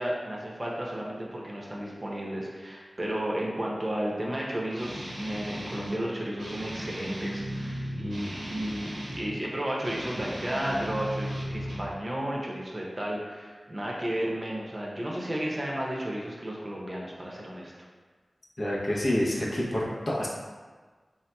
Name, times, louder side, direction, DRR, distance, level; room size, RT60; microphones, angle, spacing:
voice 1, 0.0-17.7, right 1 dB, 35° right, -3 dB, 0.6 m, -33 dB
Guitar, 4.7-6.0 6.4-9.3 9.8-11.9, equal, 90° right, 0.7 m, -36 dB
voice 2, 18.6-20.3, left 1 dB, 55° left, -5 dB, 0.7 m, -28 dB
3.4 x 2.8 x 2.2 m, 1.4 s
wide cardioid pair, 55°, 0 cm